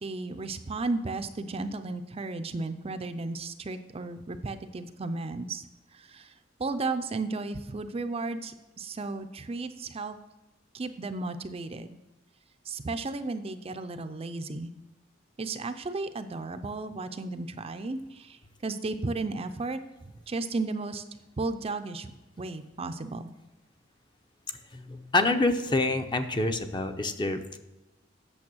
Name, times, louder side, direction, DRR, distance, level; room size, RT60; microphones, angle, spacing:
voice 1, 0.0-5.6 5.9-6.3 6.6-10.2 10.7-12.0 12.7-14.7 15.4-19.8 20.3-21.0 21.4-23.3, right 3 dB, 30° right, 9 dB, 0.5 m, -34 dB
voice 2, 24.7-27.6, left 2 dB, 25° left, 7 dB, 0.6 m, -27 dB
8.6 x 6.9 x 6.2 m, 1.0 s
head